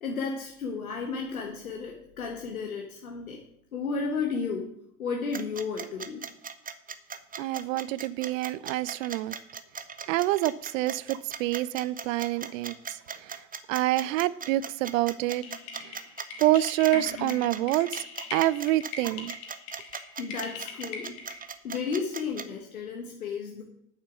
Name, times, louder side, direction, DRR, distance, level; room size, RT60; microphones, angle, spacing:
voice 1, 0.0-3.4 3.7-4.7 5.0-6.2 20.2-21.2 21.6-23.6, left 5 dB, 85° left, 1 dB, 1.3 m, -33 dB
sound 1, 5.3-22.4, right 6 dB, 20° right, 0.9 m, -38 dB
voice 2, 7.4-9.3 10.1-12.7 13.2-13.4 13.7-15.4 15.8-16.0 16.4-18.0 18.3-19.3, right 16 dB, 70° right, 20 dB, 0.6 m, -27 dB
sound 2, 15.4-21.6, left 5 dB, 65° left, 2.2 m, -41 dB
8.9 x 7.3 x 6.0 m, 0.74 s
hypercardioid pair, 65°, 41 cm